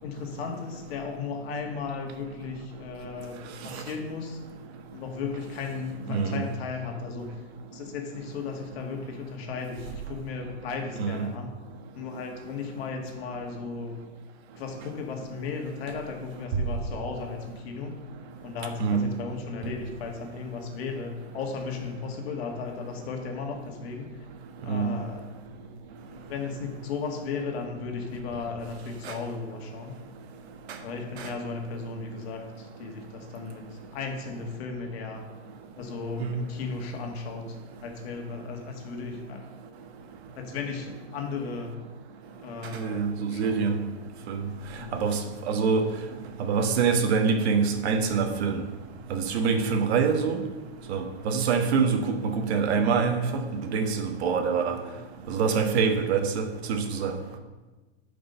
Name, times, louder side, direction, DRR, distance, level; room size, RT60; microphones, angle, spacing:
voice 1, 0.0-4.4 4.9-7.4 7.7-11.5 11.9-13.9 14.6-17.9 18.4-24.1 24.6-25.3 26.1-30.0 30.8-35.3 35.8-39.5 40.4-41.7 42.4-43.0 43.3-43.7 44.8-45.2, left 5 dB, 60° left, 3 dB, 1.9 m, -35 dB
voice 2, 6.1-6.4 11.0-11.2 18.8-19.0 24.7-24.9 29.0-29.1 31.2-31.3 36.2-36.3 42.7-43.7 44.3-44.4 44.9-45.2 45.5-45.8 46.5-48.6 49.1-50.4 50.9-53.2 53.7-54.8 55.3-57.1, right 5 dB, 65° right, 5 dB, 1.4 m, -25 dB
11.0 x 5.2 x 5.6 m, 1.2 s
supercardioid pair, 145°, 35 cm